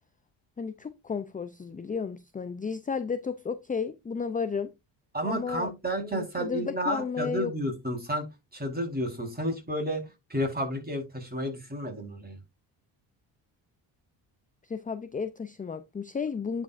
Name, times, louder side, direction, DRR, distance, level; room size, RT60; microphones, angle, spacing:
voice 1, 0.6-4.7 5.2-5.7 6.0-7.5 14.6-16.6, left 5 dB, 15° left, 0.5 m, -33 dB
voice 2, 5.1-8.3 8.5-10.0 10.3-12.4, equal, 20° right, 4.2 m, -31 dB
10.5 x 5.1 x 2.5 m
supercardioid pair, 65°, 50 cm